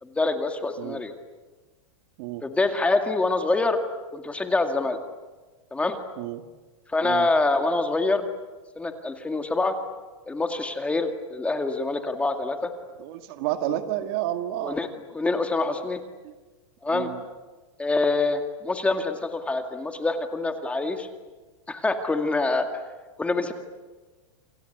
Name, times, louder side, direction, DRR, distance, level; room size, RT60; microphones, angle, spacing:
voice 1, 0.0-1.1 2.4-3.8 4.1-5.0 5.7-6.0 6.9-8.2 8.8-9.8 10.3-12.7 13.7-13.8 14.6-14.9 15.1-16.0 16.8-17.1 17.8-21.1 21.7-22.7 23.2-23.5, left 3 dB, 10° left, 6 dB, 2.1 m, -25 dB
voice 2, 13.0-14.8 16.2-16.3 16.9-17.2, right 13 dB, 50° right, 8 dB, 2.2 m, -30 dB
28.5 x 26.0 x 8.1 m, 1.3 s
supercardioid pair, 150°, 17 cm